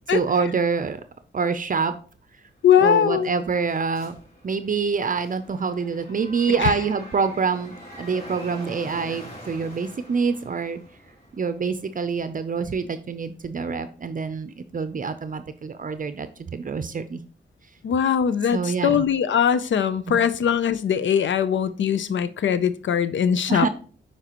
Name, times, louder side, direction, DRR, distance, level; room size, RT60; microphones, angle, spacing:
voice 1, 0.1-1.0 1.3-1.9 2.8-4.2 4.4-7.7 8.0-10.8 11.3-17.2 18.5-19.0 20.1-20.2 23.5-23.7, right 5 dB, 45° right, 11 dB, 0.6 m, -26 dB
voice 2, 2.6-3.3 6.6-6.7 17.8-23.7, left 8 dB, 75° left, 14 dB, 0.5 m, -21 dB
sound 1, 2.6-13.0, equal, 50° left, 3.6 m, -44 dB
9.0 x 4.4 x 3.0 m, 0.41 s
cardioid pair, 65°, 19 cm